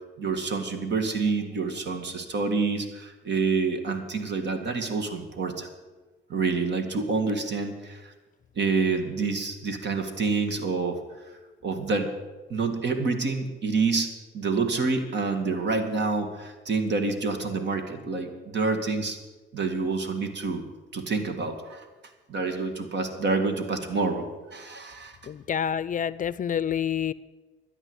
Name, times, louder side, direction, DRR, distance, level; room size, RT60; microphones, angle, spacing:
voice 1, 0.2-5.7 6.3-8.1 8.6-11.0 11.6-12.1 12.5-19.2 19.5-20.6 20.9-21.8 22.3-24.3 24.5-25.2, right 4 dB, 65° right, 7 dB, 2.1 m, -27 dB
voice 2, 25.3-27.1, left 8 dB, 40° left, 18 dB, 0.5 m, -28 dB
13.0 x 9.9 x 8.1 m, 1.2 s
cardioid pair, 90°, 20 cm